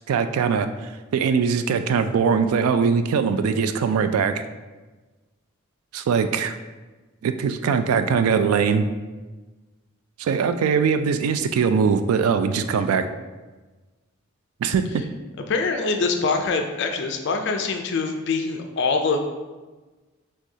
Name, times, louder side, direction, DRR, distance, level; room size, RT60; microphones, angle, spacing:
voice 1, 0.1-0.7 1.1-4.4 5.9-6.5 7.2-8.9 10.2-13.0 14.6-15.0, right 6 dB, 85° right, 10 dB, 0.3 m, -21 dB
voice 2, 15.5-19.2, left 4 dB, 55° left, 4 dB, 0.3 m, -24 dB
6.0 x 2.3 x 2.7 m, 1.2 s
head